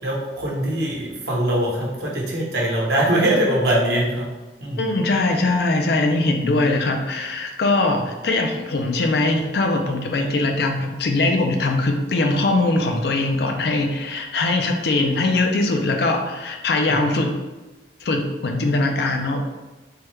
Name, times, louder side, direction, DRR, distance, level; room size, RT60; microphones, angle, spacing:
voice 1, 0.0-4.3 4.6-4.8 16.9-17.0, right 1 dB, 65° right, -3 dB, 0.9 m, -22 dB
voice 2, 4.8-17.3 18.0-19.4, left 2 dB, 65° left, 3 dB, 0.4 m, -21 dB
3.4 x 2.2 x 3.1 m, 1.1 s
head